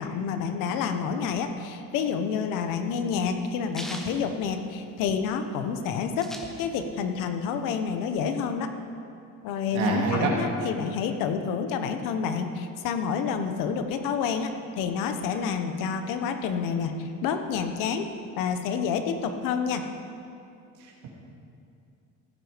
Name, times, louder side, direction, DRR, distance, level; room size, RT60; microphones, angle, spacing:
voice 1, 0.0-6.3 6.6-8.7 9.4-14.5 14.8-18.1 18.4-19.8, left 6 dB, 75° left, 7 dB, 1.2 m, -28 dB
sound 1, 2.0-5.2 5.5-5.6 5.8-7.1 7.4-8.5, equal, ahead, 1.0 m, -42 dB
voice 2, 9.7-10.3 20.8-21.1, right 4 dB, 60° right, -2 dB, 2.7 m, -27 dB
15.5 x 9.5 x 5.2 m, 2.5 s
cardioid pair, 170°, 33 cm